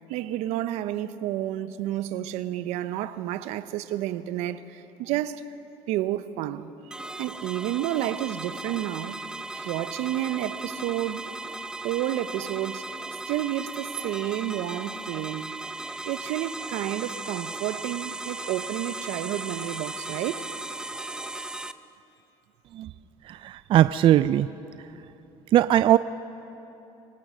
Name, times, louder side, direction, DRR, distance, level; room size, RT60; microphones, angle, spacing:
voice 1, 0.1-5.4 5.9-9.2 9.5-11.3 11.8-12.8 13.3-15.5 16.0-20.5, right 13 dB, 75° right, 0.8 m, -30 dB
sound 1, 6.9-21.7, right 2 dB, 5° right, 0.7 m, -37 dB
voice 2, 23.3-24.5 25.5-26.0, right 12 dB, 50° right, 0.4 m, -20 dB
25.5 x 17.0 x 6.3 m
cardioid pair, 110°, 12 cm